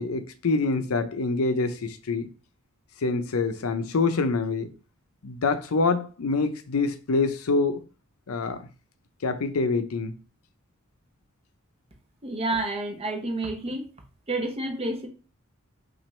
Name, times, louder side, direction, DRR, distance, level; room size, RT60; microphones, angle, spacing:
voice 1, 0.0-2.3 3.0-4.7 5.2-7.8 8.3-8.7 9.2-10.2, left 3 dB, 75° left, 0.6 m, -26 dB
voice 2, 12.2-13.8 14.3-15.1, right 2 dB, 30° right, 0.9 m, -29 dB
5.9 x 2.5 x 3.1 m
head